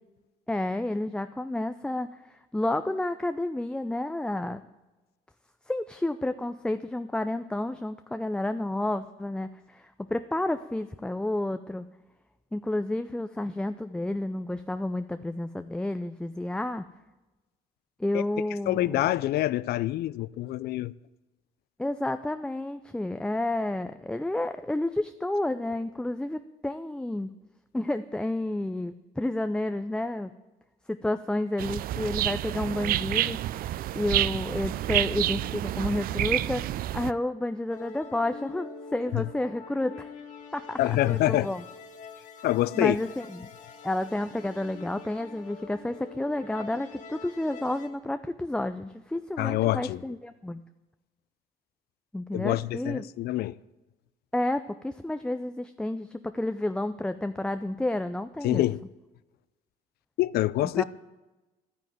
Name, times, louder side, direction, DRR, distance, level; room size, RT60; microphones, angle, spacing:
voice 1, 0.5-4.6 5.7-11.8 12.5-16.8 18.0-19.0 21.8-27.3 27.7-30.3 30.9-33.4 33.9-36.7 36.9-40.1 40.5-41.6 42.7-43.5 43.8-50.6 52.1-53.1 54.3-58.6 60.8-60.9, left 1 dB, 5° left, 0.5 m, -30 dB
voice 2, 18.7-20.9 39.1-39.2 40.8-41.5 42.4-43.0 49.4-50.0 52.3-53.6 58.4-58.8 60.2-60.8, left 15 dB, 70° left, 0.5 m, -26 dB
sound 1, 31.6-37.1, right 13 dB, 60° right, 0.4 m, -29 dB
sound 2, 37.7-47.9, left 5 dB, 50° left, 2.2 m, -45 dB
11.5 x 9.9 x 9.3 m
cardioid pair, 110°, 17 cm